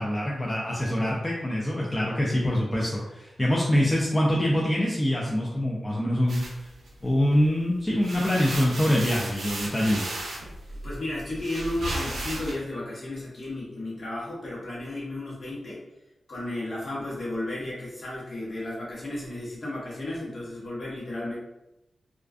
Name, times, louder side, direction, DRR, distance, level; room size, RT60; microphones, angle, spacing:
voice 1, 0.0-6.4 7.0-10.1, equal, 25° left, -4 dB, 0.4 m, -24 dB
sound 1, 6.3-7.5 7.9-12.5, right 1 dB, 85° right, 0.5 m, -35 dB
voice 2, 10.7-15.8 16.3-21.4, left 1 dB, 50° left, -6 dB, 1.0 m, -33 dB
2.3 x 2.2 x 2.4 m, 0.94 s
wide cardioid pair, 85°, 0 cm